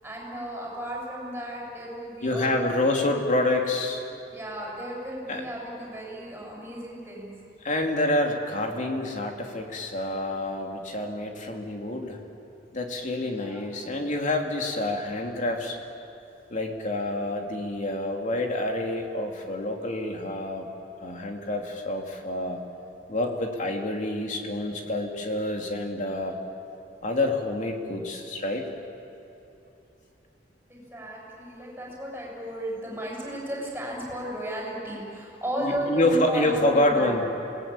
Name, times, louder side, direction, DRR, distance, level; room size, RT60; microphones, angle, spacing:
voice 1, 0.0-2.8 4.3-7.3 13.2-13.6 30.7-37.1, equal, 10° right, -3 dB, 7.3 m, -34 dB
voice 2, 2.2-4.0 5.3-5.4 7.6-12.2 12.7-15.8 16.5-20.7 21.0-22.6 23.1-26.4 27.0-28.7 35.6-37.2, left 1 dB, 45° left, 2 dB, 2.9 m, -27 dB
28.0 x 19.0 x 8.9 m, 2.8 s
head